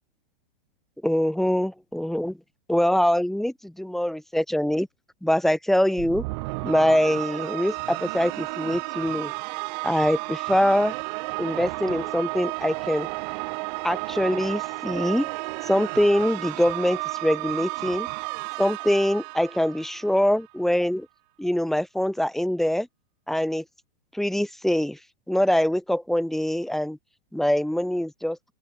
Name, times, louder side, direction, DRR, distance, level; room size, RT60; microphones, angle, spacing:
voice 1, 1.0-2.4 2.7-4.9 5.2-6.2 6.6-9.3 9.8-10.9 11.4-13.1 13.8-15.3 15.7-18.1 18.6-21.1 21.4-22.9 23.3-23.6 24.1-25.0 25.3-27.0 27.3-28.4, equal, ahead, 2.5 m, -23 dB
sound 1, 6.0-20.3, right 27 dB, 50° right, 6.2 m, -32 dB
open air
hypercardioid pair, 130°, 29 cm